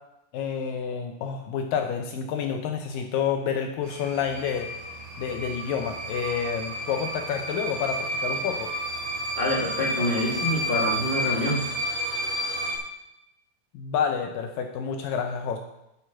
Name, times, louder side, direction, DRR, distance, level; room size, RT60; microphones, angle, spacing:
voice 1, 0.3-4.7 5.2-8.7 13.7-15.6, left 7 dB, 75° left, 5 dB, 2.2 m, -29 dB
sound 1, 3.8-12.8, right 1 dB, 85° right, 3.8 m, -31 dB
voice 2, 9.4-11.6, left 1 dB, 20° left, -3 dB, 1.5 m, -26 dB
9.3 x 7.4 x 5.9 m, 0.88 s
omnidirectional pair, 4.3 m